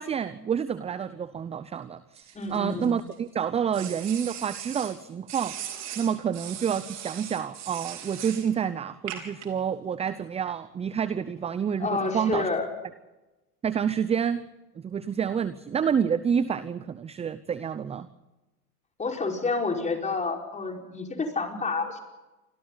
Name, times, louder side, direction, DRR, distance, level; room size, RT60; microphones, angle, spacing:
voice 1, 0.0-5.5 6.0-12.5 13.6-14.5 14.8-18.1, right 7 dB, 15° right, 15 dB, 0.7 m, -28 dB
sound 1, 2.1-3.1 3.7-4.9 5.3-8.5 9.1-9.5, right 10 dB, 35° right, 4.3 m, -39 dB
voice 2, 2.4-3.0 11.8-12.7 19.0-22.0, left 4 dB, 15° left, 2 dB, 5.2 m, -29 dB
29.5 x 25.5 x 4.1 m, 1.0 s
hypercardioid pair, 100°, 46 cm